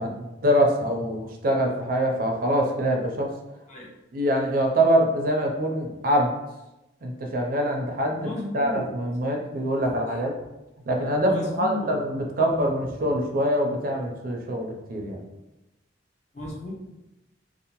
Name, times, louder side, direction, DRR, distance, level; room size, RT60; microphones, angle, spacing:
voice 1, 0.0-3.3 4.1-6.3 7.0-10.3 10.9-15.2, equal, 50° right, 2 dB, 0.4 m, -24 dB
voice 2, 8.2-8.9 10.1-10.2 11.2-11.9 16.3-16.7, left 2 dB, 40° left, -2 dB, 0.5 m, -34 dB
2.7 x 2.0 x 2.8 m, 0.97 s
head